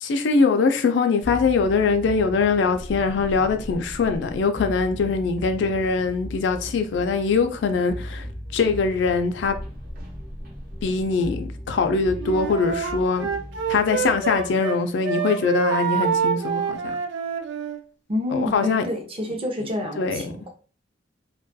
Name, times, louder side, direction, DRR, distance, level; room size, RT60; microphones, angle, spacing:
voice 1, 0.0-8.3 8.5-9.6 10.8-13.3 13.7-17.0 18.3-18.8 20.0-20.2, left 4 dB, 70° left, 0.3 m, -22 dB
sound 1, 1.2-14.5, equal, 50° right, 0.9 m, -37 dB
Wind instrument woodwind instrument, 12.2-14.8 15.0-17.8, right 6 dB, 70° right, 0.4 m, -26 dB
voice 2, 18.1-20.5, left 1 dB, 30° right, 0.6 m, -28 dB
2.3 x 2.2 x 2.6 m
head